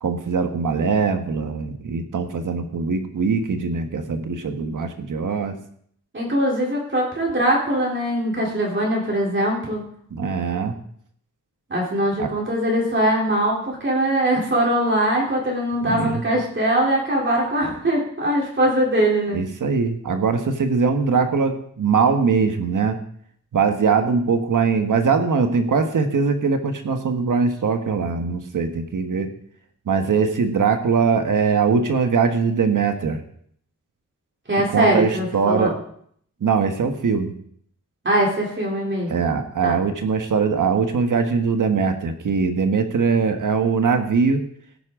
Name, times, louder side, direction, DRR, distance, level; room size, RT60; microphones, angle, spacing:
voice 1, 0.0-5.5 10.1-10.8 12.2-12.3 15.8-16.2 19.3-23.0 23.5-29.3 29.9-33.2 34.7-35.8 36.4-37.3 39.1-44.4, right 5 dB, 90° right, 6 dB, 1.5 m, -21 dB
voice 2, 6.1-9.8 11.7-19.4 34.5-35.7 38.0-39.2 39.6-39.7, right 1 dB, 40° right, -3 dB, 3.4 m, -21 dB
17.0 x 9.8 x 3.8 m, 0.64 s
wide cardioid pair, 145°, 31 cm